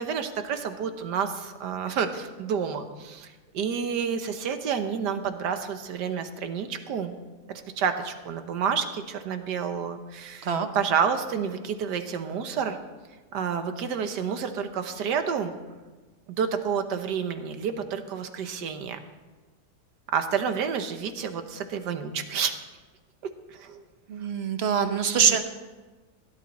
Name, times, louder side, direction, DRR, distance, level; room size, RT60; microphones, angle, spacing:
voice 1, 0.0-7.1 7.5-10.5 10.7-12.8 13.3-15.5 16.3-19.0 20.1-22.5 23.5-23.8 25.1-25.4, right 7 dB, 90° right, 8 dB, 1.6 m, -29 dB
voice 2, 24.1-25.4, right 6 dB, 45° right, 8 dB, 1.0 m, -24 dB
16.5 x 10.5 x 4.2 m, 1.3 s
omnidirectional pair, 1.8 m